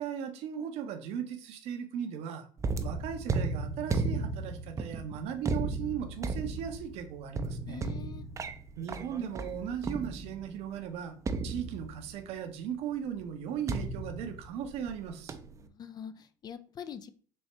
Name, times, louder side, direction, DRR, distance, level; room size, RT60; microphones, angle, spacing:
voice 1, 0.0-2.5 2.8-7.8 8.8-11.2 11.4-15.4, right 8 dB, 60° right, 7 dB, 0.7 m, -37 dB
sound 1, 2.6-10.5 11.3-12.3 13.7-15.0 15.3-15.6, right 3 dB, 25° right, 0.5 m, -35 dB
voice 2, 7.6-8.3 15.6-17.1, left 8 dB, 35° left, 11 dB, 0.4 m, -44 dB
4.2 x 2.7 x 3.3 m, 0.43 s
hypercardioid pair, 80°, 12 cm